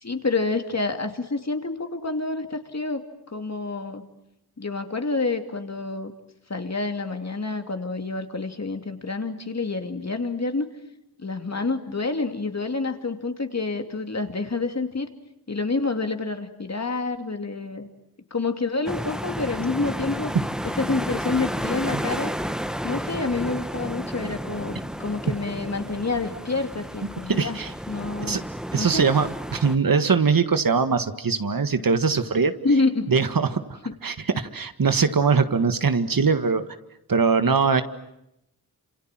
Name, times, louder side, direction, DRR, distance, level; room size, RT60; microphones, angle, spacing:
voice 1, 0.0-3.0 3.3-4.0 4.6-6.1 6.5-10.7 11.2-15.1 15.5-17.9 18.3-20.3 20.8-22.3 22.8-27.6 27.9-28.4 28.8-29.1 32.6-33.1 33.8-34.0, left 3 dB, 45° left, 6 dB, 2.8 m, -28 dB
sound 1, 18.9-29.8, equal, ahead, 2.0 m, -32 dB
voice 2, 27.3-27.7 28.3-28.4 28.7-32.5 33.1-33.6 34.0-36.6 37.1-37.8, right 5 dB, 70° right, 10 dB, 1.8 m, -21 dB
28.5 x 27.0 x 7.6 m, 0.83 s
wide cardioid pair, 70°, 36 cm